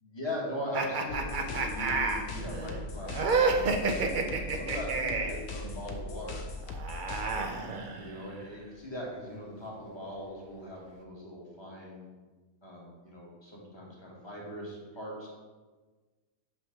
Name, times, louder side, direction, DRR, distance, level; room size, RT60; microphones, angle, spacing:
voice 1, 0.1-6.4 7.8-12.1 12.6-15.3, equal, 20° left, -4 dB, 1.4 m, -40 dB
sound 1, 0.7-5.4 6.6-8.3, right 4 dB, 80° right, 0.4 m, -30 dB
sound 2, 1.1-7.5, left 3 dB, 85° left, 1.2 m, -40 dB
6.1 x 3.2 x 5.7 m, 1.3 s
omnidirectional pair, 1.6 m